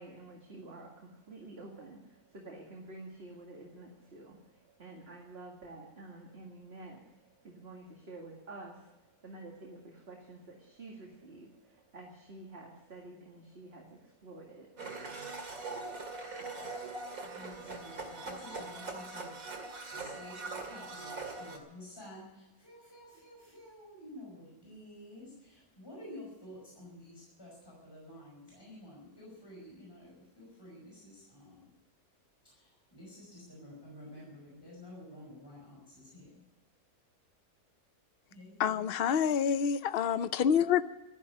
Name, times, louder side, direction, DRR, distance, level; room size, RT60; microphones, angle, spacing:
voice 1, 0.0-15.7, right 2 dB, 45° right, 0 dB, 2.3 m, -50 dB
Domestic sounds home sounds, 14.8-21.6, right 3 dB, 65° right, 2.7 m, -42 dB
voice 2, 17.2-31.7 32.4-36.4 38.3-39.1, left 1 dB, 15° left, -4 dB, 5.7 m, -51 dB
voice 3, 38.6-40.8, left 8 dB, 55° left, 14 dB, 0.7 m, -27 dB
13.0 x 11.0 x 9.7 m, 0.99 s
omnidirectional pair, 1.6 m